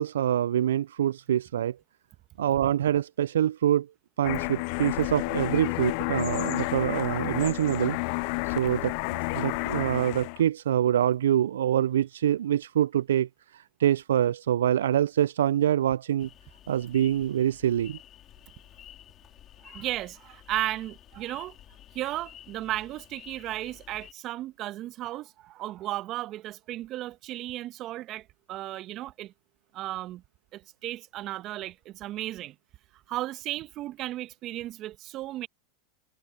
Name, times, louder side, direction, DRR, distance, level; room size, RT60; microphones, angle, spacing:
voice 1, 0.0-1.8 2.4-3.9 4.2-8.0 8.4-8.9 9.3-16.3 16.7-18.0, right 10 dB, 75° right, 0.3 m, -25 dB
sound 1, 4.2-10.4, left 31 dB, 55° left, 0.4 m, -31 dB
sound 2, 16.2-24.1, left 11 dB, 35° left, 4.3 m, -51 dB
voice 2, 19.6-21.5 21.9-29.3 29.7-30.2 30.5-32.5 33.1-35.5, right 15 dB, 45° right, 1.5 m, -35 dB
hypercardioid pair, 95°, 0 cm